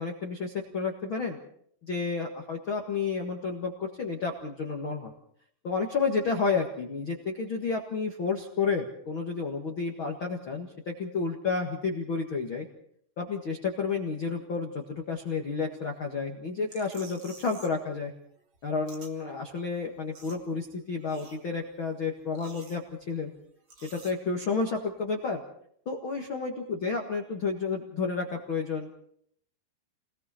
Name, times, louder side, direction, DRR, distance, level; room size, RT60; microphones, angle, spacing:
voice 1, 0.0-1.4 1.9-5.1 5.6-12.7 13.2-18.1 18.6-23.3 23.9-25.4 25.8-28.9, left 4 dB, 75° left, 1 dB, 1.1 m, -31 dB
sound 1, 16.7-17.9 18.1-19.1 19.5-19.6 19.8-20.7 21.0-21.7 22.2-23.2 23.7-24.1, right 4 dB, 35° right, 2.4 m, -51 dB
29.5 x 20.5 x 4.3 m, 0.67 s
omnidirectional pair, 5.2 m